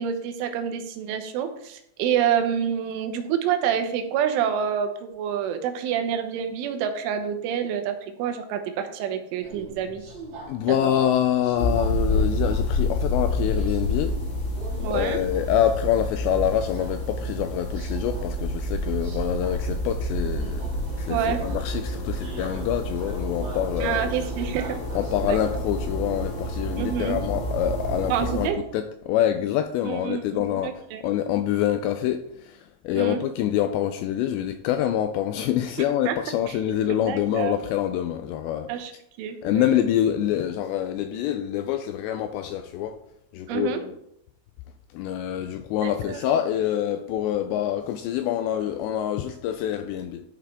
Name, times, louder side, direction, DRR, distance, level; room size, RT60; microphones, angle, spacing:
voice 1, 0.0-10.0 10.7-10.9 14.8-15.2 21.1-21.5 23.8-24.8 25.2-25.4 26.8-27.2 28.1-28.6 29.9-31.0 32.9-33.2 36.1-36.2 36.5-36.6 36.9-37.6 38.7-38.9 39.2-39.7 43.5-43.8 45.8-46.2, right 8 dB, 90° right, 3.5 m, -27 dB
Subway metro underground, 9.4-25.6, right 2 dB, 60° right, 1.8 m, -44 dB
voice 2, 10.5-14.2 14.9-20.6 20.9-24.0 25.0-38.7 39.4-43.0 43.3-43.9 44.9-50.2, left 11 dB, 85° left, 2.5 m, -26 dB
sound 1, 11.6-28.5, left 1 dB, 65° left, 1.1 m, -29 dB
12.5 x 5.8 x 3.6 m
omnidirectional pair, 5.5 m